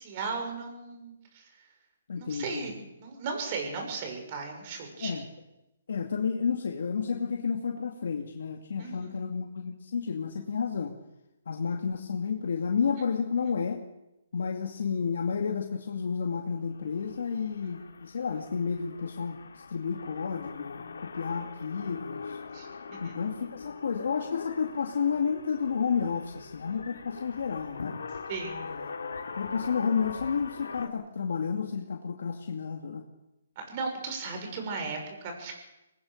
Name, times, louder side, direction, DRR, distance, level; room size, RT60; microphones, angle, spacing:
voice 1, 0.0-1.4 2.2-5.1 8.8-9.2 22.5-23.2 28.3-28.7 33.5-35.5, right 4 dB, 35° right, 3 dB, 6.7 m, -36 dB
voice 2, 2.1-2.7 5.0-5.2 5.9-10.9 11.5-13.8 14.3-22.4 23.0-27.9 28.6-28.9 29.3-33.0, left 6 dB, 70° left, 2 dB, 2.4 m, -31 dB
sound 1, 16.6-30.9, left 4 dB, 85° left, 3.0 m, -42 dB
24.0 x 20.5 x 6.7 m, 0.92 s
hypercardioid pair, 160°, 0 cm